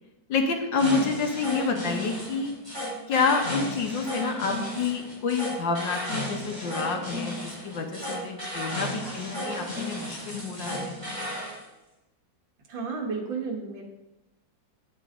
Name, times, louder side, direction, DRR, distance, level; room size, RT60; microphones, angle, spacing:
voice 1, 0.3-2.5 3.1-11.1, left 4 dB, 75° left, 3 dB, 1.8 m, -28 dB
sound 1, 0.8-11.6, left 1 dB, 15° right, 3.2 m, -34 dB
voice 2, 12.7-13.8, right 5 dB, 85° right, 1 dB, 2.1 m, -32 dB
9.1 x 8.1 x 3.8 m, 1.0 s
omnidirectional pair, 2.0 m